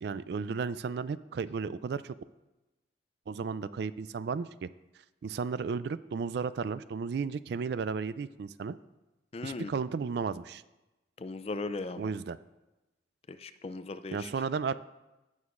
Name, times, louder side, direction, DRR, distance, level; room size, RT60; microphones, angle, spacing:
voice 1, 0.0-2.2 3.3-4.7 5.2-8.7 9.4-10.6 12.0-12.4 14.1-14.7, right 5 dB, 60° right, 15 dB, 0.3 m, -34 dB
voice 2, 9.3-9.7 11.2-12.1 13.3-14.3, left 3 dB, 30° left, 11 dB, 0.3 m, -38 dB
16.5 x 6.3 x 2.5 m, 1.0 s
head